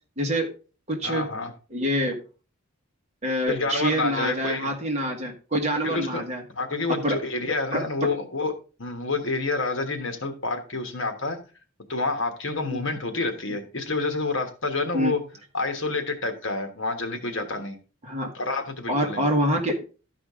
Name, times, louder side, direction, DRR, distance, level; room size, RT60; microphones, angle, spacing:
voice 1, 0.2-0.5 0.9-1.3 1.7-2.2 3.2-6.4 7.0-7.2 7.7-8.1 12.7-12.8 14.9-15.1 18.0-18.3 18.9-19.8, equal, 30° right, 1 dB, 1.5 m, -26 dB
voice 2, 1.0-1.5 3.5-4.7 5.8-6.2 6.5-8.5 8.8-11.4 11.9-15.2 15.5-17.8 18.3-19.2, left 3 dB, 60° left, 6 dB, 1.3 m, -28 dB
13.0 x 5.0 x 3.6 m, 0.35 s
head